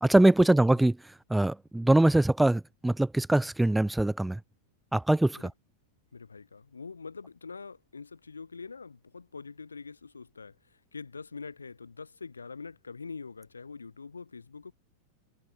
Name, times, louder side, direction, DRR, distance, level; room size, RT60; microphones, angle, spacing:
voice 1, 0.0-4.4 4.9-5.5, right 1 dB, 5° right, 0.4 m, -23 dB
voice 2, 6.1-14.7, left 4 dB, 75° left, 3.6 m, -44 dB
figure-of-eight pair, 90°, 0 cm